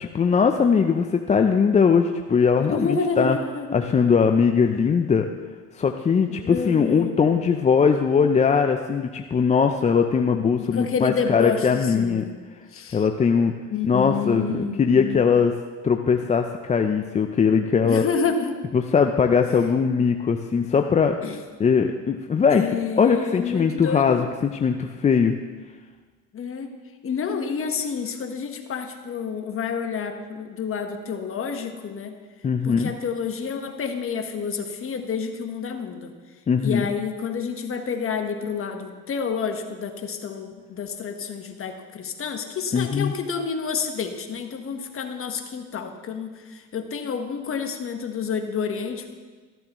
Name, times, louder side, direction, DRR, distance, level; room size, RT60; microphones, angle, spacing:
voice 1, 0.0-3.4 3.7-5.3 5.8-12.2 12.9-13.5 13.9-15.5 15.8-18.1 18.7-21.2 21.6-22.7 23.0-25.4 32.4-32.9 36.5-36.9 42.7-43.1, left 6 dB, 20° left, 5 dB, 0.5 m, -20 dB
voice 2, 2.6-3.8 6.3-7.2 10.5-12.3 12.7-13.1 13.7-15.2 17.8-18.6 21.2-21.4 22.5-24.2 26.3-26.7 27.0-32.2 32.6-36.1 36.6-49.1, left 5 dB, 35° left, 5 dB, 1.3 m, -29 dB
14.0 x 12.0 x 3.1 m, 1.4 s
supercardioid pair, 95°, 37 cm